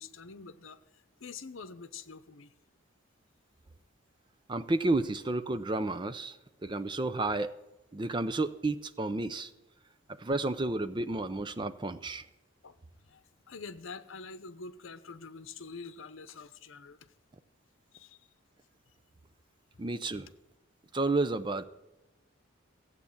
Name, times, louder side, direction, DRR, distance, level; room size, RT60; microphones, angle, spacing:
voice 1, 0.0-2.5 12.6-17.1 17.9-18.3 19.7-19.9, left 4 dB, 75° left, 12 dB, 0.8 m, -46 dB
voice 2, 4.5-6.4 6.6-7.5 7.9-9.5 10.2-12.3 19.8-20.3 20.9-21.6, right 2 dB, 20° right, 12 dB, 0.5 m, -31 dB
15.0 x 8.2 x 7.2 m, 1.0 s
head